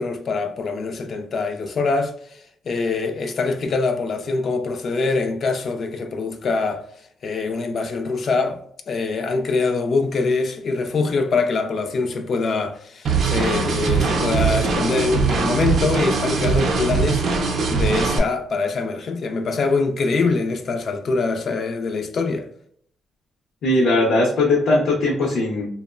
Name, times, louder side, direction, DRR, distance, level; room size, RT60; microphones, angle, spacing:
voice 1, 0.0-6.8 7.2-8.6 8.9-17.2 17.7-22.5, left 3 dB, 50° left, 0.3 m, -24 dB
sound 1, 13.0-18.2, right 4 dB, 55° right, 0.4 m, -21 dB
voice 2, 23.6-25.7, left 2 dB, 85° left, 0.7 m, -19 dB
2.9 x 2.0 x 2.3 m
cardioid pair, 145°, 0 cm